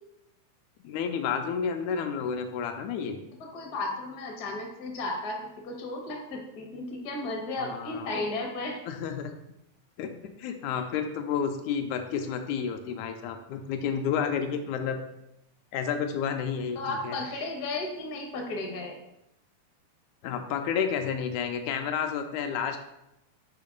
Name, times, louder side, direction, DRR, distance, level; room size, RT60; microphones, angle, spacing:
voice 1, 0.8-3.2 7.6-8.1 8.9-9.3 10.0-10.1 10.4-15.0 15.7-17.2 20.2-22.8, left 7 dB, 80° left, 6 dB, 1.9 m, -30 dB
voice 2, 3.4-8.8 16.7-19.0, left 2 dB, 60° left, 0 dB, 0.9 m, -34 dB
6.5 x 2.8 x 5.2 m, 0.87 s
omnidirectional pair, 3.4 m